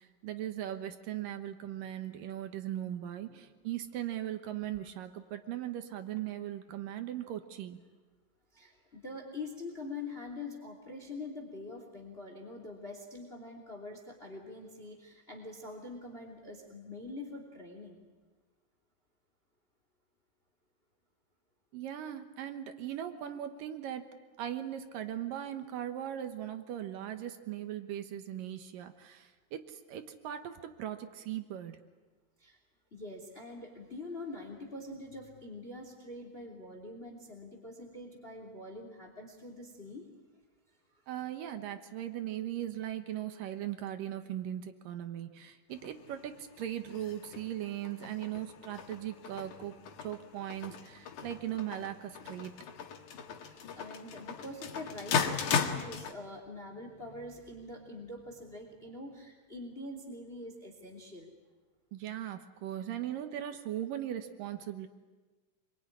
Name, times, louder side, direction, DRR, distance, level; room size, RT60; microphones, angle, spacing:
voice 1, 0.0-7.8 21.7-31.8 41.1-52.5 61.9-64.9, right 11 dB, 75° right, 8 dB, 2.9 m, -39 dB
voice 2, 8.5-18.0 32.4-32.6 32.9-40.1 40.9-41.0 53.4-61.3, left 2 dB, 20° left, 3 dB, 2.9 m, -45 dB
sound 1, 45.7-56.1, left 7 dB, 65° left, 3.1 m, -38 dB
26.0 x 23.0 x 9.8 m, 1.3 s
omnidirectional pair, 3.9 m